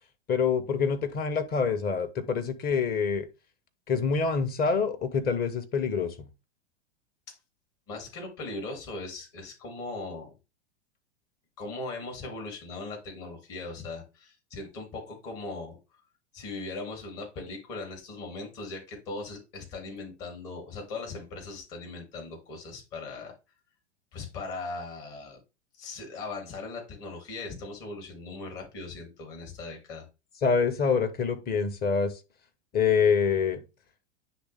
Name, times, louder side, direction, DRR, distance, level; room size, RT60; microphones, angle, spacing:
voice 1, 0.3-3.3 3.9-6.3 30.4-32.2 32.7-33.6, left 5 dB, 30° left, 1.1 m, -26 dB
voice 2, 7.9-10.3 11.6-15.8 16.3-23.3 24.1-25.4 25.8-30.1, left 3 dB, 45° left, 3.5 m, -39 dB
10.0 x 3.3 x 3.7 m
figure-of-eight pair, 90°, 33 cm